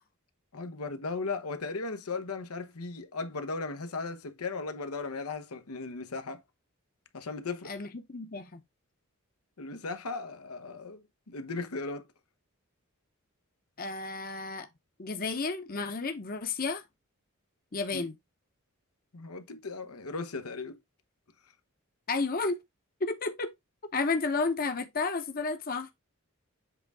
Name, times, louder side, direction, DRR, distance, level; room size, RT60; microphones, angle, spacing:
voice 1, 0.5-6.4 7.1-7.7 9.6-12.1 17.9-18.0 19.1-20.8, left 3 dB, 85° left, 0.9 m, -37 dB
voice 2, 7.6-8.6 13.8-14.7 15.0-16.8 17.7-18.1 22.1-22.6 23.0-23.5 23.9-25.9, left 3 dB, 40° left, 0.8 m, -32 dB
7.9 x 3.6 x 3.5 m
head